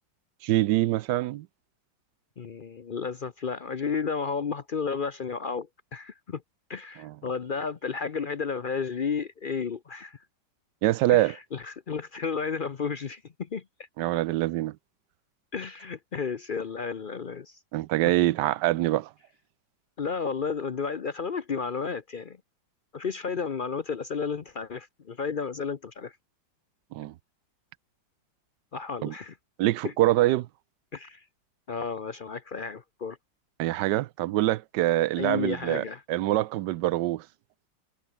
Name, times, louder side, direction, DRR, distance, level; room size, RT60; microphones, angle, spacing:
voice 1, 0.4-1.5 7.0-7.1 10.8-11.4 14.0-14.8 17.7-19.1 26.9-27.1 29.0-29.1 29.6-30.5 33.6-37.2, right 16 dB, 75° right, 1.2 m, -25 dB
voice 2, 2.4-6.4 6.7-10.2 11.1-13.6 15.5-17.6 18.2-18.3 20.0-22.4 22.9-26.2 28.7-29.4 29.8-29.9 30.9-31.2 31.7-33.2 35.2-36.0, left 5 dB, 65° left, 0.5 m, -32 dB
omnidirectional pair, 2.0 m